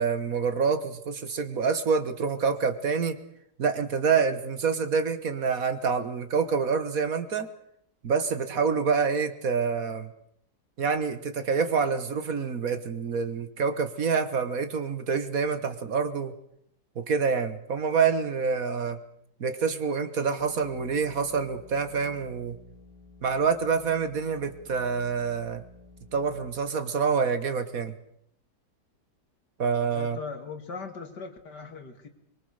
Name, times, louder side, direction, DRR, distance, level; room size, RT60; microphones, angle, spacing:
voice 1, 0.0-3.2 3.6-7.5 8.0-10.1 10.8-16.3 17.0-19.0 19.4-22.6 23.2-25.6 26.1-27.9 29.6-30.2, right 5 dB, 55° right, 10 dB, 1.8 m, -27 dB
sound 1, 20.4-26.8, left 3 dB, 30° left, 7.7 m, -53 dB
voice 2, 29.9-32.1, left 4 dB, 75° left, 7 dB, 2.8 m, -39 dB
23.5 x 23.0 x 6.6 m, 0.73 s
omnidirectional pair, 1.8 m